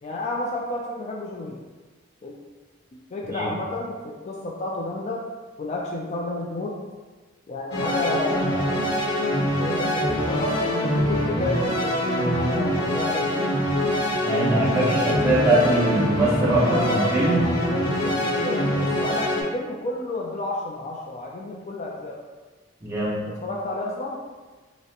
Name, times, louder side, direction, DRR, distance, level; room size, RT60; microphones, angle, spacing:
voice 1, 0.0-1.6 2.2-2.4 3.1-5.2 5.6-6.8 7.5-9.1 9.6-13.6 16.6-22.2 23.4-24.2, left 2 dB, 35° left, -1 dB, 0.3 m, -31 dB
sound 1, 7.7-19.4, equal, 60° left, 1.0 m, -24 dB
voice 2, 14.2-17.4 22.8-23.2, right 1 dB, 15° right, -8 dB, 1.1 m, -22 dB
5.4 x 2.1 x 2.9 m, 1.3 s
head